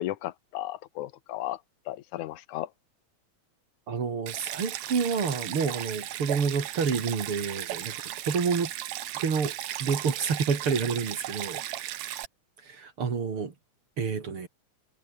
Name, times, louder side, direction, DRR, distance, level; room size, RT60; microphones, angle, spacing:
voice 1, 0.0-1.6 1.9-2.7, left 14 dB, 75° left, 2.3 m, -34 dB
voice 2, 3.9-8.7 9.1-9.5 9.8-12.0 12.6-13.5 14.0-14.5, right 5 dB, 45° right, 3.4 m, -29 dB
Stream, 4.3-12.3, right 13 dB, 70° right, 2.3 m, -36 dB
omnidirectional pair, 3.5 m